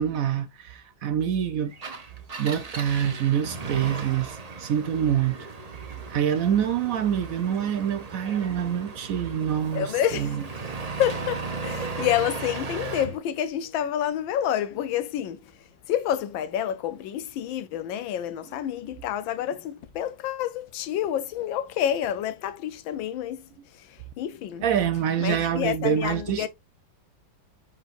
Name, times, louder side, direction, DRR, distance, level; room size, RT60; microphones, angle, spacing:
voice 1, 0.0-1.7 2.4-5.4 6.1-10.4 24.6-26.5, right 9 dB, 75° right, 0.8 m, -26 dB
Engine, 1.7-13.2, right 4 dB, 55° right, 0.4 m, -36 dB
voice 2, 9.7-10.3 11.0-15.5 15.9-23.5 23.7-24.6 25.2-26.5, left 10 dB, 75° left, 1.5 m, -28 dB
9.0 x 4.4 x 2.5 m
omnidirectional pair, 2.2 m